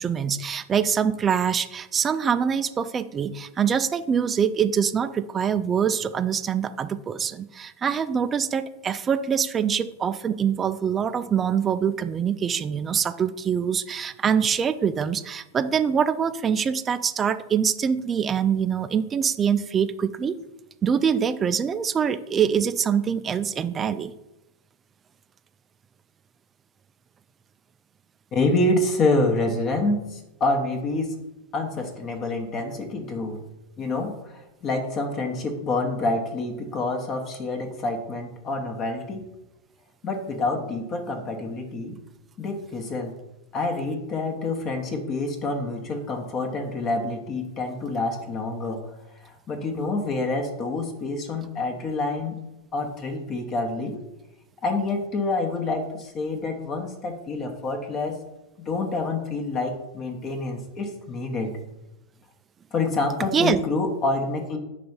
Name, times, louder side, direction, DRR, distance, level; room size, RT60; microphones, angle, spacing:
voice 1, 0.0-20.4 20.8-24.1 63.3-63.6, right 7 dB, 20° right, 12 dB, 0.3 m, -24 dB
voice 2, 28.3-31.1 31.5-33.4 33.8-39.2 40.0-42.0 42.4-43.1 43.5-48.8 49.2-52.4 52.7-54.0 54.6-58.2 58.6-61.6 62.7-64.6, left 2 dB, 30° left, 4 dB, 0.9 m, -27 dB
5.2 x 3.3 x 5.5 m, 0.93 s
figure-of-eight pair, 90°, 0 cm